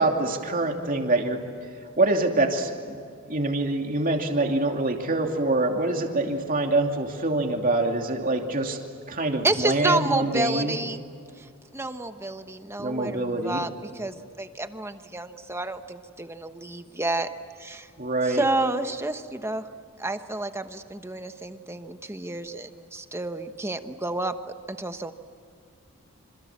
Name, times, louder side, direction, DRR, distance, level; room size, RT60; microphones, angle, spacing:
voice 1, 0.0-1.4 2.0-3.0 3.3-8.8 9.1-10.8 12.8-13.6 18.0-18.4, right 2 dB, 40° right, 3 dB, 2.8 m, -25 dB
voice 2, 9.4-11.0 11.4-11.5 11.7-17.3 17.6-17.9 18.2-19.7 20.0-24.4 24.7-25.1, right 2 dB, 10° right, 8 dB, 1.1 m, -30 dB
27.0 x 27.0 x 7.4 m, 2.4 s
head